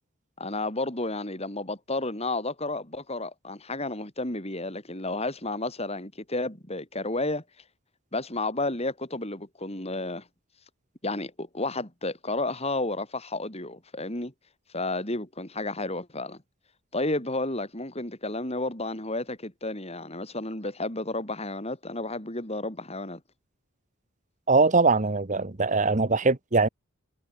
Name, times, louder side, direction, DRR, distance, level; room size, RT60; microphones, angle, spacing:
voice 1, 0.4-7.4 8.1-10.3 11.0-14.3 14.7-16.4 16.9-23.2, left 2 dB, 30° left, 4.7 m, -32 dB
voice 2, 24.5-26.7, right 3 dB, 35° right, 1.2 m, -22 dB
head